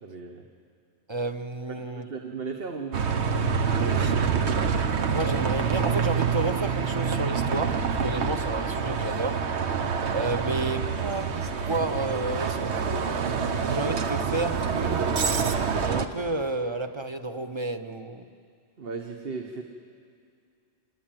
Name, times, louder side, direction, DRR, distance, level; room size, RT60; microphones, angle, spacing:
voice 1, 0.0-0.5 1.7-3.0 3.8-4.0 18.8-19.6, right 4 dB, 60° right, 3 dB, 1.4 m, -36 dB
voice 2, 1.1-2.1 3.9-4.1 5.1-9.4 10.1-12.7 13.3-15.1 15.8-18.3, right 2 dB, 25° right, 8 dB, 0.9 m, -31 dB
Bus, 2.9-16.1, right 6 dB, 90° right, 1.3 m, -26 dB
26.0 x 19.5 x 9.1 m, 2.4 s
omnidirectional pair, 1.1 m